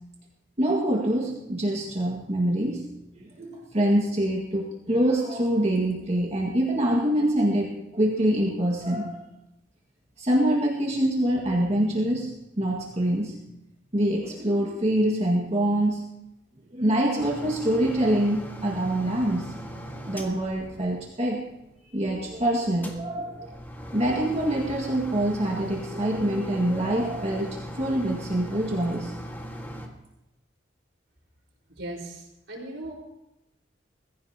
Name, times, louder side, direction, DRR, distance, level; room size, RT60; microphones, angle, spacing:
voice 1, 0.6-2.8 3.2-9.3 10.2-13.4 13.9-16.1 16.7-19.5 19.9-21.4 21.9-23.5 23.9-29.1, right 1 dB, 35° right, -2 dB, 1.9 m, -25 dB
sound 1, 17.2-21.4 22.7-29.9, equal, 10° left, 1.8 m, -39 dB
voice 2, 31.7-32.9, right 1 dB, 80° right, -2 dB, 4.8 m, -38 dB
22.0 x 15.5 x 2.9 m, 0.91 s
head